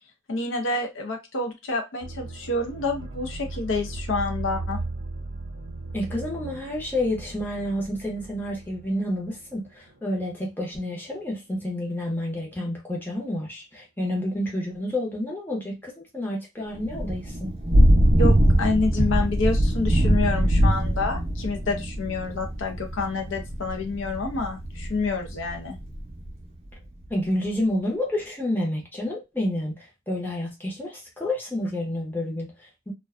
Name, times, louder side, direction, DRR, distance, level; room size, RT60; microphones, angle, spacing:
voice 1, 0.3-4.8 18.2-25.8, left 3 dB, 75° left, 0.6 m, -28 dB
sound 1, 2.0-11.3 11.6-11.7, right 2 dB, 85° right, 0.6 m, -37 dB
voice 2, 5.9-17.6 27.1-32.9, left 1 dB, 10° left, 0.6 m, -29 dB
Thunder / Rain, 16.8-26.3, equal, 30° right, 0.5 m, -22 dB
2.4 x 2.1 x 2.4 m
head